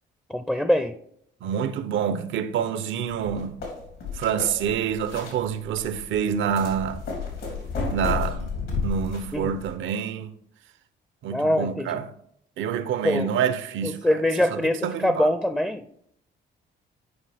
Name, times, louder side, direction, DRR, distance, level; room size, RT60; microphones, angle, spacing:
voice 1, 0.3-0.9 9.3-9.5 11.3-12.0 13.0-13.3 13.8-15.8, left 1 dB, 5° left, 0.4 m, -23 dB
voice 2, 1.4-3.6 4.1-7.0 7.9-8.6 8.8-10.3 11.2-12.1 12.6-14.2 14.5-15.3, right 8 dB, 80° right, 0.7 m, -27 dB
sound 1, 3.1-9.7, left 4 dB, 85° left, 3.0 m, -32 dB
9.9 x 5.2 x 3.4 m
cardioid pair, 90°, 20 cm